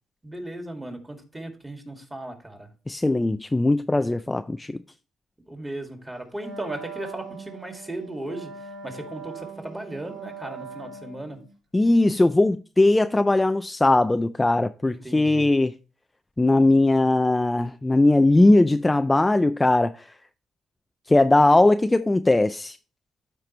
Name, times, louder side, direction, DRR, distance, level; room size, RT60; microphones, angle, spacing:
voice 1, 0.2-2.7 5.5-8.5 8.8-11.4 14.8-15.5, right 1 dB, 15° right, 2.0 m, -36 dB
voice 2, 2.9-4.8 11.7-15.7 16.4-20.1 21.1-22.8, left 2 dB, 15° left, 0.3 m, -19 dB
Wind instrument woodwind instrument, 6.3-11.5, right 5 dB, 45° right, 4.7 m, -41 dB
13.0 x 4.5 x 3.0 m
cardioid pair, 90°, 0 cm